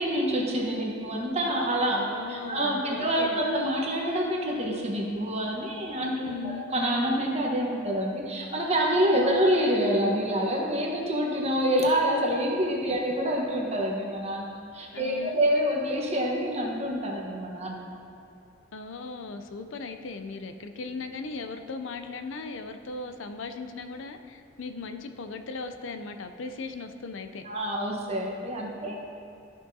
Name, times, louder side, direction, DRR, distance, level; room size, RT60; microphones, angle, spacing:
voice 1, 0.0-2.0 2.3-17.9 27.4-29.0, equal, 35° right, -1 dB, 1.1 m, -27 dB
voice 2, 1.9-3.5 6.3-6.7 9.1-9.4 14.9-15.4 18.7-27.5, left 4 dB, 70° left, 8 dB, 0.5 m, -38 dB
13.5 x 6.2 x 2.7 m, 2.5 s
head